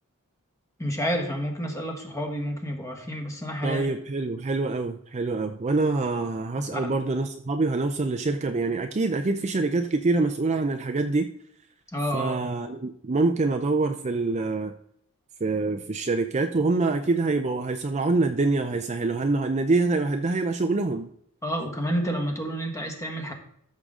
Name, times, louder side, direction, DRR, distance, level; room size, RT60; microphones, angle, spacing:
voice 1, 0.8-3.9 6.6-6.9 11.9-12.3 21.4-23.3, equal, 15° left, 3 dB, 1.6 m, -29 dB
voice 2, 3.6-11.3 12.1-14.7 15.4-21.1, right 3 dB, 30° right, 6 dB, 0.5 m, -25 dB
13.0 x 6.7 x 3.7 m, 0.68 s
head